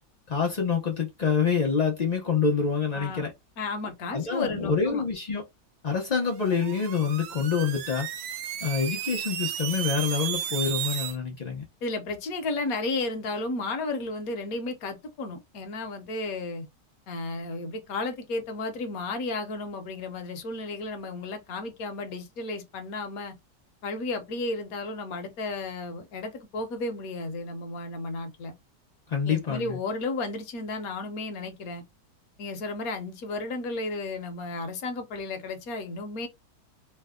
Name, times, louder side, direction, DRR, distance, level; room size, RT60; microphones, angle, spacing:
voice 1, 0.3-3.3 4.1-5.4 5.8-8.1 8.6-11.6 29.1-29.8, left 6 dB, 90° left, 0.3 m, -26 dB
voice 2, 2.9-3.2 3.6-5.0 11.8-16.7 17.1-23.3 23.8-28.5 29.2-31.8 32.4-36.3, left 3 dB, 65° left, 1.1 m, -33 dB
sound 1, 6.3-11.2, right 10 dB, 70° right, 1.0 m, -34 dB
3.3 x 2.1 x 3.5 m
omnidirectional pair, 1.8 m